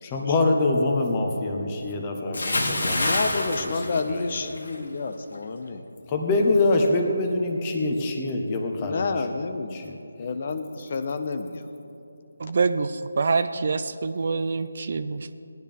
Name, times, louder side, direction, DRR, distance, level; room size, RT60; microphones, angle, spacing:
voice 1, 0.0-4.3 6.1-9.1 9.7-9.9, left 2 dB, 20° left, 2 dB, 1.1 m, -25 dB
Bathtub (filling or washing) / Splash splatter, 2.3-4.8 5.1-5.4, left 1 dB, 75° left, 1.8 m, -27 dB
voice 2, 2.8-5.8 8.8-11.7, left 4 dB, 40° left, 8 dB, 0.6 m, -30 dB
voice 3, 12.4-15.3, right 4 dB, 50° right, 12 dB, 0.5 m, -25 dB
18.0 x 10.5 x 3.5 m, 2.8 s
figure-of-eight pair, 165°, 0 cm